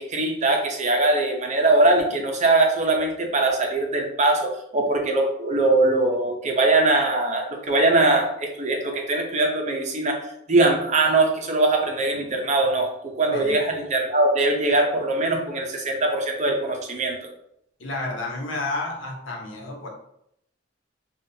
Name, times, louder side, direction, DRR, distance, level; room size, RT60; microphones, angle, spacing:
voice 1, 0.0-10.2 10.5-17.2, right 2 dB, 40° right, 2 dB, 0.6 m, -21 dB
voice 2, 17.8-19.9, left 2 dB, 85° left, 0 dB, 1.0 m, -31 dB
5.2 x 2.4 x 2.7 m, 0.75 s
head